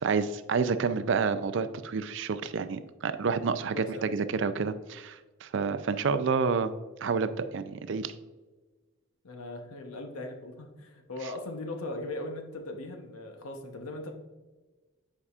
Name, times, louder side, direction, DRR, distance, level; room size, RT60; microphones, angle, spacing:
voice 1, 0.0-6.7 7.0-8.1, right 5 dB, 55° right, 12 dB, 0.4 m, -29 dB
voice 2, 3.7-4.1 9.2-14.1, left 2 dB, 85° left, 4 dB, 0.8 m, -39 dB
9.8 x 4.8 x 2.4 m, 1.3 s
head